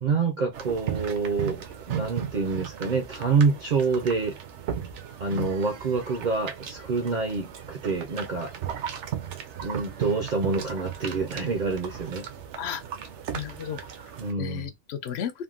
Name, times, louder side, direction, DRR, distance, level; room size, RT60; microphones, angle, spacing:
voice 1, 0.0-4.4 5.2-8.5 9.6-12.2 14.2-14.7, right 4 dB, 50° right, 0.6 m, -27 dB
sound 1, 0.5-14.3, right 9 dB, 75° right, 0.9 m, -36 dB
voice 2, 13.3-14.1 14.4-15.4, left 9 dB, 65° left, 0.7 m, -34 dB
3.5 x 2.1 x 2.4 m
omnidirectional pair, 1.3 m